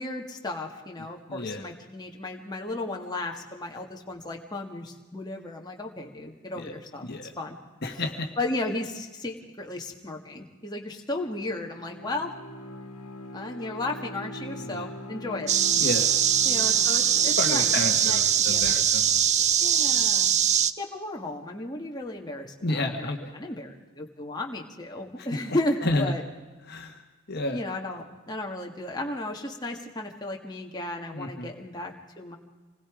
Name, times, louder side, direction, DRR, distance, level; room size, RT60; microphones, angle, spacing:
voice 1, 0.0-7.0 7.4-7.5 7.9-8.0 8.4-12.3 13.3-15.5 16.4-17.7 18.0-18.9 19.6-20.4 20.8-26.2 27.5-32.4, left 2 dB, 20° left, 0 dB, 1.8 m, -34 dB
voice 2, 1.3-1.6 6.5-6.7 7.0-7.3 7.8-8.4 14.6-14.9 15.8-16.1 17.4-19.5 22.6-23.3 25.2-25.4 25.8-26.1 26.7-27.6 31.1-31.5, left 2 dB, 45° left, 4 dB, 1.6 m, -31 dB
Bowed string instrument, 11.2-19.0, left 1 dB, 85° left, 1.8 m, -42 dB
sound 1, 15.5-20.7, right 9 dB, 30° right, 0.6 m, -22 dB
27.0 x 20.0 x 5.0 m, 1.3 s
head